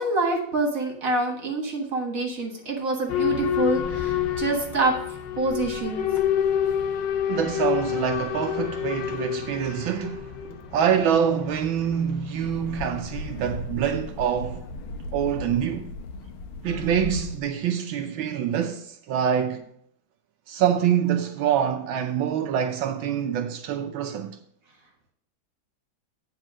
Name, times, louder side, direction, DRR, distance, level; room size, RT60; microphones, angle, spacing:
voice 1, 0.0-4.9 5.4-6.1 10.4-10.6, right 2 dB, 45° right, 1.8 m, -26 dB
Boat Water vehicle / Alarm, 3.1-13.7, left 9 dB, 70° left, 1.3 m, -29 dB
voice 2, 7.3-10.3 10.7-14.6 15.1-15.9 16.6-19.6 20.5-24.4, right 8 dB, 75° right, 1.4 m, -25 dB
sound 1, 12.4-17.4, left 2 dB, 85° left, 1.5 m, -36 dB
9.3 x 4.1 x 6.1 m
omnidirectional pair, 2.3 m